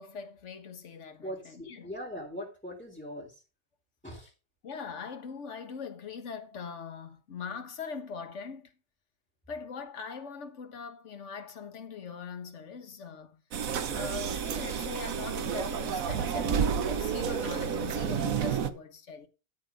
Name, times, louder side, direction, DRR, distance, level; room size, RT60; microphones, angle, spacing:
voice 1, 0.0-1.9 4.6-8.7 9.5-13.4 13.9-19.3, left 5 dB, 50° left, 1.6 m, -41 dB
voice 2, 1.2-3.4 4.0-4.3, equal, 5° left, 3.7 m, -41 dB
sound 1, 13.5-18.7, right 7 dB, 60° right, 1.3 m, -30 dB
13.0 x 5.6 x 5.2 m
omnidirectional pair, 1.7 m